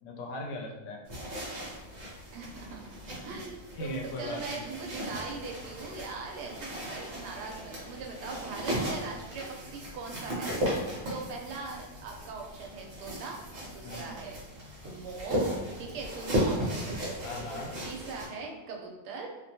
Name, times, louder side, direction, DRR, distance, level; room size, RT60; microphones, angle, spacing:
voice 1, 0.0-1.0 1.9-2.2 3.8-4.7 13.8-14.1 17.2-17.7, left 2 dB, 90° left, 0 dB, 1.2 m, -39 dB
sound 1, 1.0-18.3, equal, 55° right, 1.0 m, -36 dB
voice 2, 2.3-13.4 13.7-14.4 14.8-15.5 15.8-17.3 17.8-19.3, right 4 dB, 80° right, 1 dB, 1.1 m, -41 dB
2.9 x 2.2 x 2.6 m, 1.2 s
omnidirectional pair, 1.7 m